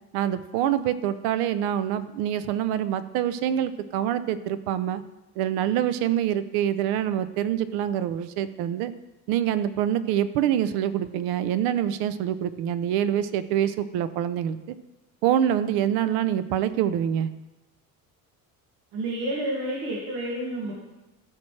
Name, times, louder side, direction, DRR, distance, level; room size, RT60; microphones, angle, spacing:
voice 1, 0.1-5.0 5.4-8.9 9.3-14.8 15.2-17.3, right 10 dB, 90° right, 13 dB, 0.7 m, -25 dB
voice 2, 18.9-20.7, right 1 dB, 70° right, -4 dB, 2.3 m, -29 dB
15.0 x 6.0 x 3.3 m, 1.1 s
cardioid pair, 165°, 36 cm